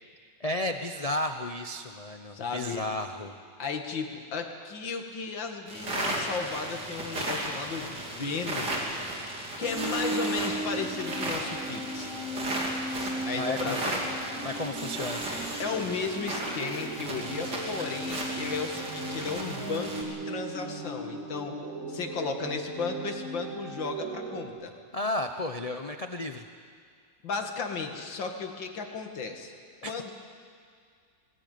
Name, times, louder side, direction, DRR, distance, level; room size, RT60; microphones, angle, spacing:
voice 1, 0.4-3.4 13.3-13.8 14.4-15.3 24.9-26.5 29.8-29.9, left 1 dB, 45° left, 6 dB, 0.4 m, -33 dB
voice 2, 2.3-2.9 3.6-8.7 9.6-12.1 13.3-14.0 15.6-21.6 21.9-24.7 27.2-29.5 29.8-30.1, left 5 dB, 80° left, 4 dB, 2.6 m, -34 dB
sound 1, 5.7-20.0, right 1 dB, 60° right, 3.6 m, -35 dB
sound 2, 9.6-24.5, right 2 dB, 45° right, 2.9 m, -37 dB
20.0 x 19.5 x 9.4 m, 2.1 s
omnidirectional pair, 2.0 m